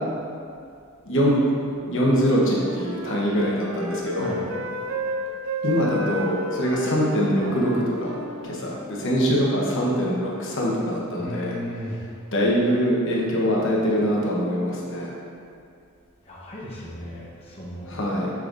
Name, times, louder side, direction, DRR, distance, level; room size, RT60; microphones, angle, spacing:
voice 1, 1.0-1.4 1.8-4.3 5.6-8.2 8.4-11.6 12.3-15.1 17.9-18.3, equal, 65° left, -4 dB, 1.0 m, -23 dB
Wind instrument woodwind instrument, 2.0-8.9, right 1 dB, 75° right, 0.5 m, -33 dB
voice 2, 4.1-4.5 11.2-12.0 16.2-17.9, left 1 dB, 30° left, -6 dB, 0.9 m, -35 dB
6.5 x 5.7 x 2.5 m, 2.4 s
head